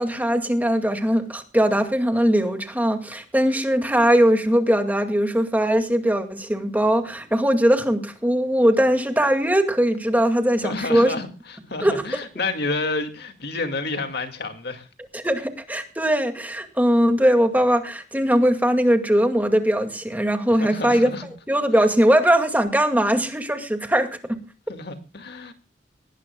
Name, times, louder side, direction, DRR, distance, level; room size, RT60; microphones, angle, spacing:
voice 1, 0.0-11.1 11.8-12.0 15.1-21.1 21.5-24.1, equal, 10° right, 2.1 m, -20 dB
voice 2, 10.6-14.9 20.5-21.3 24.7-25.5, left 3 dB, 60° left, 2.2 m, -29 dB
19.5 x 19.0 x 2.3 m
head